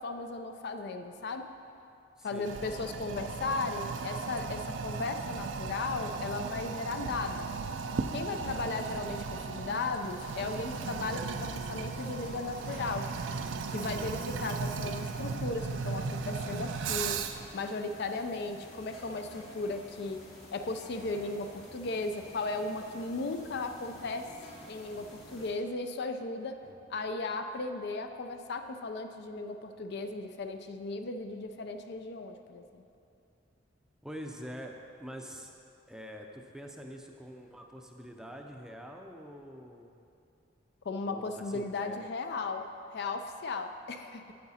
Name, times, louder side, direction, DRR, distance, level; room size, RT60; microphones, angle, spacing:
voice 1, 0.0-1.5 2.2-7.5 8.1-13.1 13.7-17.2 17.5-20.2 20.5-24.3 24.7-26.6 26.9-32.8 40.8-42.7 42.9-44.3, left 3 dB, 60° left, 7 dB, 0.4 m, -36 dB
voice 2, 2.2-2.5 8.3-8.8 14.0-14.1 26.7-27.0 34.0-35.5 35.9-39.9 41.0-42.0, equal, 5° right, 2 dB, 0.5 m, -46 dB
Toilet flush, 2.4-17.5, right 5 dB, 70° right, 0.4 m, -36 dB
sound 1, 10.0-25.5, left 1 dB, 90° left, 2.0 m, -50 dB
8.6 x 7.9 x 4.2 m, 2.6 s
head